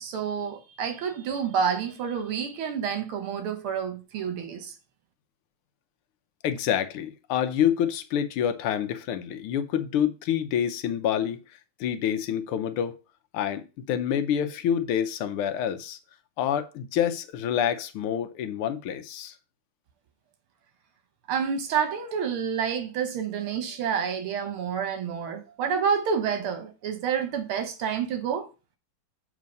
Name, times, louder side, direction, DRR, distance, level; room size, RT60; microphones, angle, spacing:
voice 1, 0.0-4.7 21.3-28.5, right 7 dB, 80° right, 1.9 m, -29 dB
voice 2, 6.4-11.4 11.8-13.0 13.3-16.0 16.4-19.3, left 9 dB, 85° left, 1.6 m, -27 dB
7.5 x 3.6 x 5.2 m
omnidirectional pair, 2.4 m